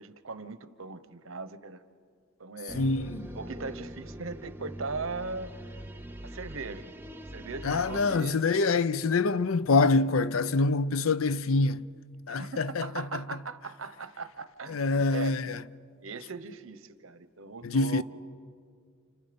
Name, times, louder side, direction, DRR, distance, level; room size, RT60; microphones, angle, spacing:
voice 1, 0.0-1.8 2.4-2.9 3.3-5.8 6.2-6.9 7.3-8.7 12.3-15.6 16.0-18.0, right 4 dB, 80° right, 1.1 m, -39 dB
voice 2, 2.7-3.3 7.6-11.9 12.3-13.2 14.7-15.6 17.6-18.0, left 3 dB, 85° left, 0.6 m, -26 dB
sound 1, 2.7-8.2, right 1 dB, 10° right, 0.7 m, -43 dB
29.5 x 28.5 x 5.3 m
head